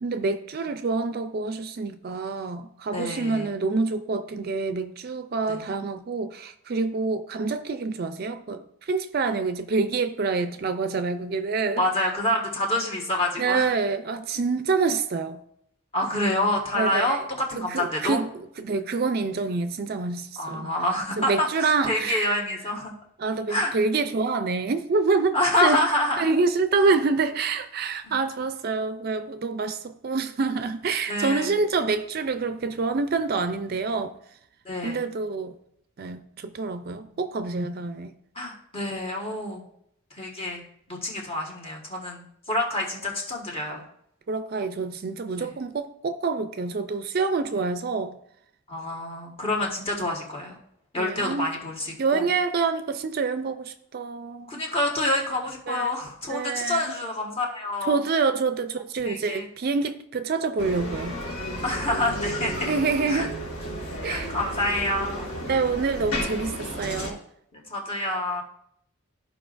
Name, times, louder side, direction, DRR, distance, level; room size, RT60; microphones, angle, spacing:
voice 1, 0.0-11.8 13.4-15.4 16.8-17.2 17.5-18.3 18.6-20.7 21.2-22.4 23.2-25.8 26.2-34.1 34.8-35.5 36.0-38.1 44.3-48.2 51.0-51.5 52.0-54.6 55.7-55.9 56.3-56.9 57.9-61.2 62.5-63.3 64.0-64.3 65.4-67.2, right 4 dB, 45° right, 0.4 m, -27 dB
voice 2, 2.9-3.5 5.5-5.6 11.8-13.7 15.9-18.2 20.4-22.9 23.5-23.7 25.3-26.3 26.8-26.9 28.0-28.1 31.1-31.5 34.6-35.1 38.3-39.6 40.1-40.6 40.9-43.8 45.4-45.6 48.7-50.6 50.9-52.3 54.5-58.0 59.0-59.5 61.6-62.7 63.1-63.3 64.0-65.3 67.5-68.4, left 1 dB, 25° left, 1.4 m, -27 dB
Bicycle, 60.6-67.1, equal, 65° left, 2.7 m, -33 dB
13.5 x 5.1 x 2.5 m
head